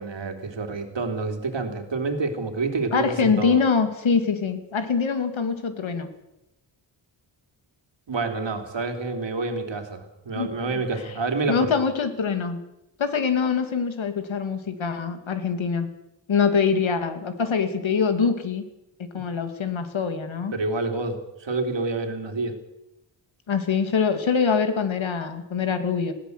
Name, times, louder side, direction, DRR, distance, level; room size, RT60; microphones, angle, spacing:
voice 1, 0.0-3.6 8.1-11.7 20.5-22.6, right 3 dB, 70° right, 5 dB, 3.3 m, -28 dB
voice 2, 2.9-6.1 10.3-10.5 11.5-12.6 13.0-15.9 16.3-18.6 19.0-20.5 23.5-26.1, left 5 dB, 85° left, 8 dB, 2.6 m, -24 dB
20.5 x 17.0 x 8.1 m, 0.89 s
wide cardioid pair, 115°, 46 cm